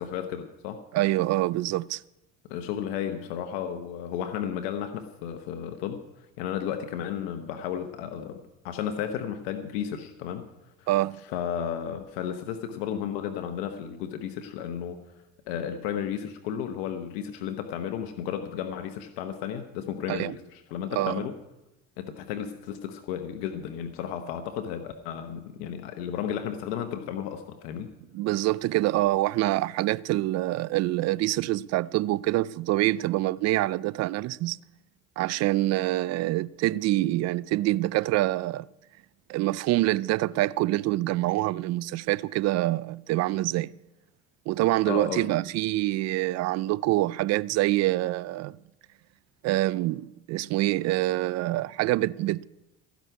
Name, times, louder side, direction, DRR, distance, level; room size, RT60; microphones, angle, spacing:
voice 1, 0.0-0.8 2.5-10.5 10.8-10.9 11.3-15.0 15.5-21.4 22.0-27.9 44.9-45.2, left 9 dB, 90° left, 1.0 m, -33 dB
voice 2, 0.9-2.0 10.9-11.2 20.1-20.3 20.9-21.3 28.1-34.6 35.2-38.7 39.3-43.7 44.5-48.6 49.4-52.5, right 17 dB, 55° right, 0.4 m, -26 dB
16.5 x 6.1 x 9.3 m
supercardioid pair, 95°, 31 cm